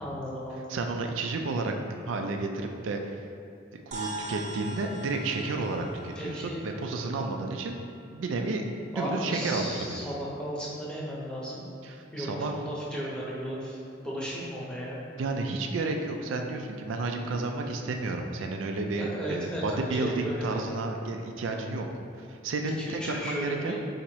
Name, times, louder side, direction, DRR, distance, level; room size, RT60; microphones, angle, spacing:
voice 1, 0.0-0.8 6.2-6.6 8.9-11.6 12.1-13.8 14.0-15.0 19.0-20.5 22.8-23.8, equal, 5° left, -6 dB, 0.8 m, -35 dB
voice 2, 0.7-1.7 2.1-3.2 3.7-7.8 8.1-8.7 9.0-10.0 11.8-12.5 15.2-21.9 22.3-23.8, right 3 dB, 85° right, 3 dB, 0.4 m, -31 dB
sound 1, 3.9-8.5, right 2 dB, 40° right, 0.5 m, -42 dB
4.1 x 2.8 x 4.5 m, 2.5 s
head